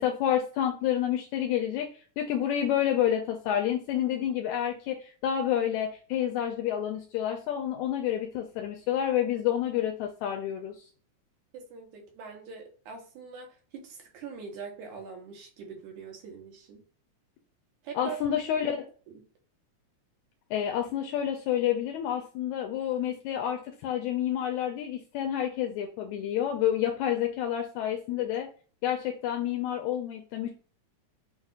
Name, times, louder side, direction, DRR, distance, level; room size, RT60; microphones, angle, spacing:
voice 1, 0.0-1.9 2.2-10.8 18.0-18.8 20.5-28.5 28.8-30.5, left 10 dB, 80° left, 1.9 m, -29 dB
voice 2, 11.5-16.8 17.8-18.2 19.1-19.2 28.2-28.3, right 5 dB, 80° right, 2.5 m, -43 dB
6.5 x 2.9 x 2.4 m
omnidirectional pair, 3.4 m